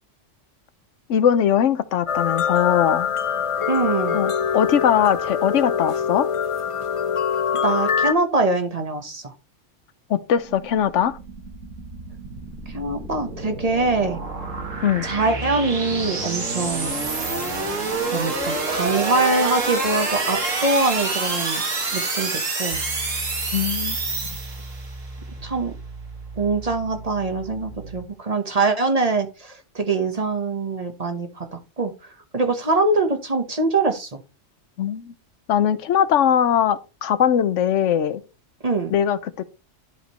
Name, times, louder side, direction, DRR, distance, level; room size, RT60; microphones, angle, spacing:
voice 1, 1.1-3.1 4.1-6.3 10.1-11.2 14.8-15.1 23.5-24.0 34.8-35.1 35.5-38.2 38.9-39.4, left 9 dB, 75° left, 1.1 m, -20 dB
sound 1, 2.1-8.1, left 7 dB, 50° left, 0.4 m, -24 dB
voice 2, 3.7-4.3 7.6-9.3 12.7-14.2 15.0-17.1 17.4-17.8 18.1-21.6 21.9-22.8 25.4-25.7 26.4-31.9 32.3-34.2 38.6-38.9, right 3 dB, 30° right, 1.1 m, -23 dB
sound 2, 10.4-24.9, right 3 dB, 80° right, 2.2 m, -28 dB
sound 3, 22.7-28.0, right 2 dB, 60° right, 3.0 m, -38 dB
11.5 x 5.1 x 3.0 m
omnidirectional pair, 1.3 m